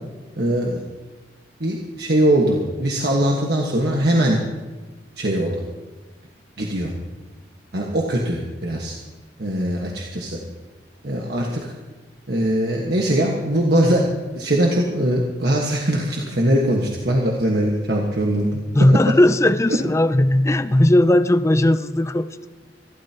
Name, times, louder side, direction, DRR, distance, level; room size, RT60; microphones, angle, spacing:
voice 1, 0.4-0.8 1.6-4.4 5.2-5.6 6.6-6.9 7.7-8.9 9.4-10.4 11.0-11.7 12.3-14.0 14.4-18.6, right 1 dB, 60° right, -1 dB, 1.6 m, -21 dB
voice 2, 18.7-22.5, left 1 dB, 15° left, 11 dB, 0.4 m, -17 dB
27.5 x 12.5 x 3.0 m, 1.3 s
head